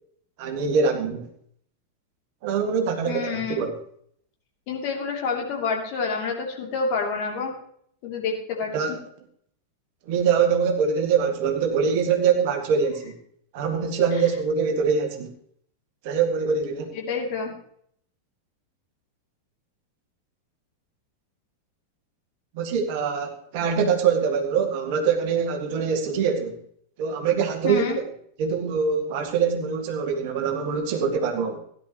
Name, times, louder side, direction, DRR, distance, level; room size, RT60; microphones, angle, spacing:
voice 1, 0.4-1.3 2.4-3.7 8.7-9.0 10.1-13.1 13.5-15.3 16.0-17.0 22.5-26.6 27.0-28.1 28.4-31.6, right 6 dB, 45° right, 5 dB, 1.9 m, -24 dB
voice 2, 3.1-3.6 4.7-7.5 8.0-8.7 16.9-17.5 27.6-28.0, left 5 dB, 45° left, 1 dB, 2.9 m, -28 dB
17.0 x 11.0 x 3.0 m, 0.65 s
figure-of-eight pair, 90°, 0 cm